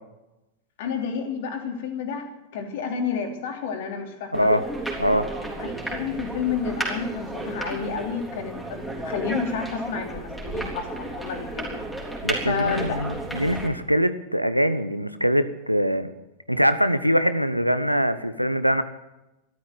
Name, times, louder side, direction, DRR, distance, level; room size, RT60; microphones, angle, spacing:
voice 1, 0.8-2.3 2.5-4.5 5.6-11.8 12.5-13.1, left 6 dB, 55° left, 4 dB, 3.0 m, -30 dB
sound 1, 4.3-13.7, right 2 dB, ahead, 3.7 m, -33 dB
voice 2, 4.3-4.7 5.0-5.3 12.2-16.1 16.5-18.8, equal, 90° right, 12 dB, 0.9 m, -23 dB
13.0 x 12.5 x 7.8 m, 0.95 s
figure-of-eight pair, 90°, 0 cm